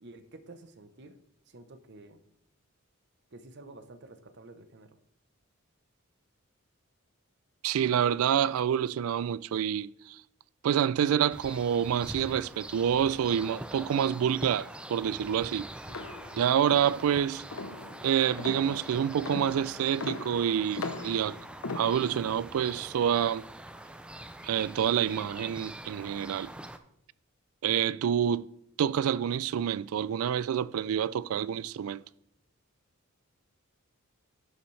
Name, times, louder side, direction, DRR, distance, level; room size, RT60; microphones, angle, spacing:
voice 1, 0.0-1.2 1.5-2.2 3.3-5.0, right 2 dB, 55° right, 0.8 m, -50 dB
voice 2, 7.6-10.2 10.6-15.7 16.3-17.4 18.0-21.4 21.7-23.4 24.4-26.5 27.6-28.5 28.8-32.0, right 9 dB, 80° right, 0.3 m, -27 dB
sound 1, 11.3-26.8, right 1 dB, 5° right, 0.4 m, -44 dB
sound 2, 15.9-22.4, left 3 dB, 75° left, 0.8 m, -40 dB
11.0 x 6.9 x 3.3 m
head